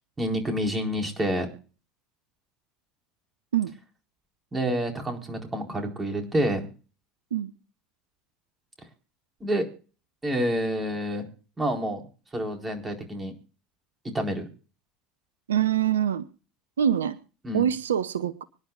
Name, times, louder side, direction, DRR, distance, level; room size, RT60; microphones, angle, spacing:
voice 1, 0.2-1.5 4.5-6.7 9.4-9.7 10.2-11.3 11.6-12.0 12.3-13.3 14.1-14.5 17.4-17.7, equal, 20° right, 3 dB, 4.3 m, -28 dB
voice 2, 15.5-16.2 16.8-17.2 17.5-18.4, right 10 dB, 80° right, 15 dB, 0.7 m, -24 dB
25.0 x 10.5 x 2.4 m, 0.37 s
hypercardioid pair, 70°, 0 cm